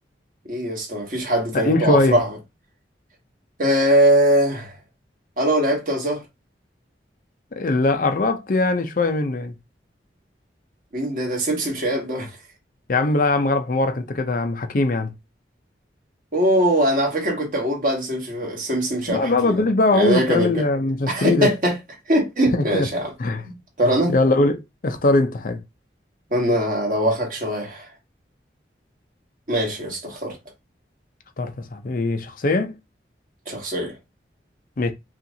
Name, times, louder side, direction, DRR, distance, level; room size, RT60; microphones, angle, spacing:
voice 1, 0.5-2.4 3.6-4.7 5.4-6.2 10.9-12.3 16.3-19.6 19.9-20.6 21.1-21.8 22.1-23.1 23.5-24.1 26.3-27.9 29.5-30.4 33.5-33.9, right 1 dB, 50° right, 1.5 m, -21 dB
voice 2, 1.5-2.2 7.6-9.5 12.9-15.1 19.1-21.5 22.5-22.9 23.2-23.4 24.1-25.6 31.4-32.7 34.8-34.9, left 2 dB, 50° left, 0.5 m, -21 dB
5.6 x 2.5 x 2.7 m
head